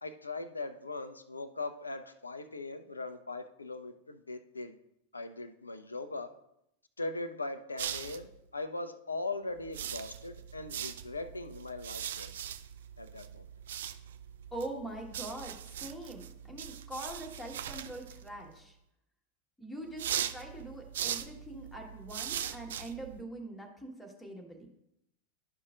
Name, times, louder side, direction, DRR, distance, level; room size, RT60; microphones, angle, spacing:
voice 1, 0.0-4.8 5.1-6.3 7.0-12.5 13.0-13.4, left 2 dB, 80° left, 11 dB, 0.5 m, -40 dB
sound 1, 7.8-8.4 9.6-18.5 19.9-23.2, right 10 dB, 60° right, 0.4 m, -40 dB
voice 2, 14.5-18.8 19.6-24.7, right 1 dB, 5° left, 0 dB, 1.6 m, -43 dB
11.5 x 5.6 x 2.5 m, 0.80 s
figure-of-eight pair, 90°, 0 cm